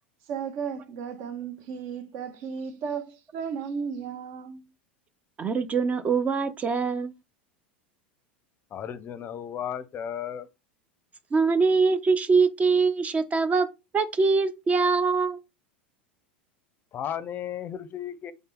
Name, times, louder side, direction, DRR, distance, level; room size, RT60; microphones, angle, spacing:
voice 1, 0.3-4.6, right 6 dB, 55° right, 0.7 m, -34 dB
voice 2, 5.4-7.1 11.3-13.7 13.9-15.4, right 4 dB, 25° right, 0.5 m, -23 dB
voice 3, 8.7-10.5 16.9-18.3, left 9 dB, 35° left, 0.5 m, -34 dB
3.5 x 2.8 x 3.7 m
hypercardioid pair, 85°, 6 cm